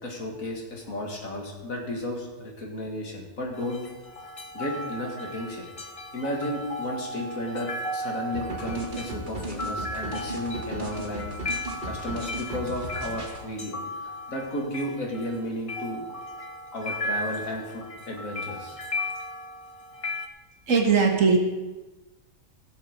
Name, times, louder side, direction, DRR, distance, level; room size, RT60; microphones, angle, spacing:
voice 1, 0.0-3.8 4.5-11.3 11.8-16.1 16.7-18.8, left 1 dB, 85° left, 1 dB, 2.6 m, -33 dB
sound 1, 3.5-20.3, left 1 dB, 30° left, 0.7 m, -36 dB
sound 2, 8.3-13.4, right 2 dB, 40° right, 1.6 m, -36 dB
voice 2, 20.7-21.4, right 5 dB, 70° right, 3 dB, 1.8 m, -19 dB
15.5 x 7.2 x 5.2 m, 1.1 s
omnidirectional pair, 1.4 m